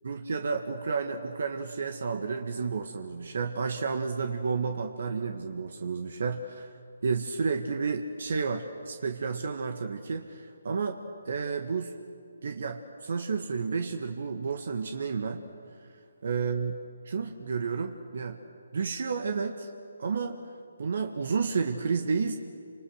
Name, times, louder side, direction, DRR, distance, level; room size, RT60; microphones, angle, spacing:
voice 1, 0.0-6.7 7.0-11.9 12.4-15.4 16.2-16.8 17.1-18.4 18.7-19.7 20.0-20.4 20.8-22.3, right 5 dB, 60° right, 5 dB, 1.8 m, -31 dB
29.5 x 26.5 x 6.6 m, 2.4 s
figure-of-eight pair, 150°, 0 cm